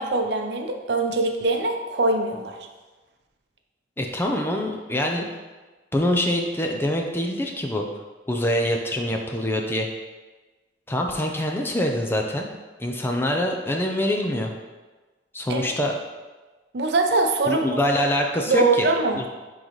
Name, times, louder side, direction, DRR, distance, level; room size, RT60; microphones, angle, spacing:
voice 1, 0.0-2.6 15.5-15.7 16.7-17.8 18.5-19.2, right 2 dB, 65° right, 4 dB, 0.7 m, -23 dB
voice 2, 4.0-5.3 5.9-7.9 8.3-9.9 10.9-12.5 12.8-14.5 15.3-15.9 17.5-18.9 19.2-19.3, left 1 dB, 10° left, 2 dB, 0.5 m, -24 dB
9.2 x 3.9 x 3.1 m, 1.3 s
head